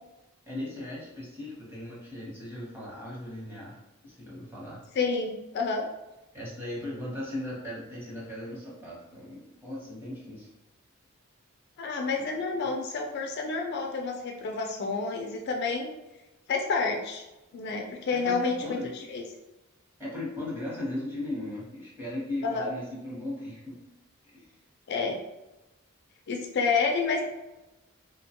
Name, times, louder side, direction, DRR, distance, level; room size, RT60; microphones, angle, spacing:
voice 1, 0.5-4.8 6.3-10.5 18.2-18.9 20.0-23.8 24.2-24.5, left 1 dB, 10° right, -6 dB, 0.8 m, -37 dB
voice 2, 5.0-5.9 11.8-15.9 16.5-17.2 17.5-19.2 22.4-22.7 24.9-25.2 26.3-27.2, left 4 dB, 50° left, 2 dB, 0.3 m, -29 dB
2.7 x 2.1 x 2.8 m, 1.0 s
head